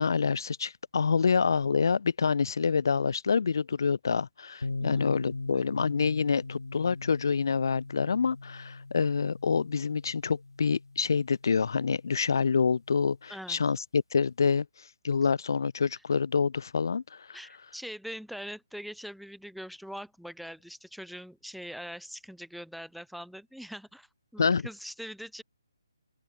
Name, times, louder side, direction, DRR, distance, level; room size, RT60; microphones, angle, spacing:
voice 1, 0.0-14.7 15.0-17.2 24.4-24.7, left 5 dB, 55° left, 2.5 m, -27 dB
sound 1, 4.6-12.3, left 3 dB, 75° left, 1.6 m, -39 dB
voice 2, 13.3-13.6 15.9-16.0 17.3-24.1 24.3-25.4, equal, ahead, 1.7 m, -42 dB
open air
figure-of-eight pair, 140°, 2 cm